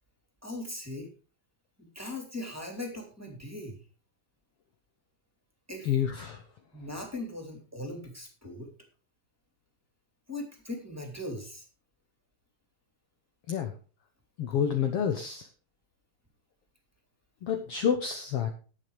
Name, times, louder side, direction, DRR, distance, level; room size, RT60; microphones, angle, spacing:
voice 1, 0.4-1.1 1.8-3.9 5.7-5.9 6.7-8.7 10.3-11.6, left 1 dB, 5° right, 2 dB, 2.9 m, -39 dB
voice 2, 5.9-6.4 13.5-13.7 14.4-15.5 17.4-18.5, left 8 dB, 70° left, 6 dB, 1.4 m, -28 dB
20.0 x 7.2 x 3.4 m, 0.36 s
omnidirectional pair, 4.1 m